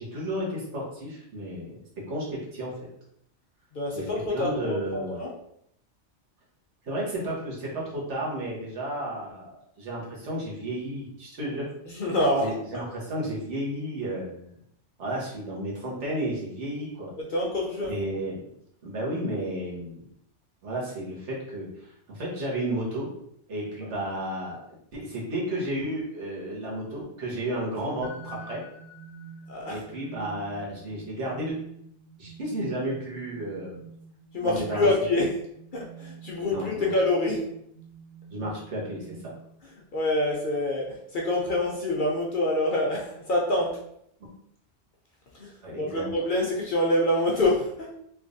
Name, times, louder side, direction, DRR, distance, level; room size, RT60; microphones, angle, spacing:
voice 1, 0.0-1.8 2.1-2.9 3.9-4.0 4.3-5.2 6.8-11.7 12.4-14.6 15.0-17.1 17.9-18.5 18.8-20.0 20.6-23.1 23.5-28.6 29.6-31.5 32.2-33.8 34.4-34.9 36.5-36.9 38.3-39.3 44.2-44.3 45.6-46.1, right 1 dB, 75° right, -4 dB, 1.5 m, -32 dB
voice 2, 3.7-5.3 11.9-12.8 17.3-18.0 23.8-23.9 29.5-29.8 34.3-35.3 35.7-37.5 39.9-43.8 45.3-48.0, left 1 dB, 55° left, -2 dB, 0.7 m, -26 dB
sound 1, 28.0-39.8, right 4 dB, 80° left, 0.9 m, -47 dB
3.3 x 3.1 x 2.6 m, 0.72 s
omnidirectional pair, 1.2 m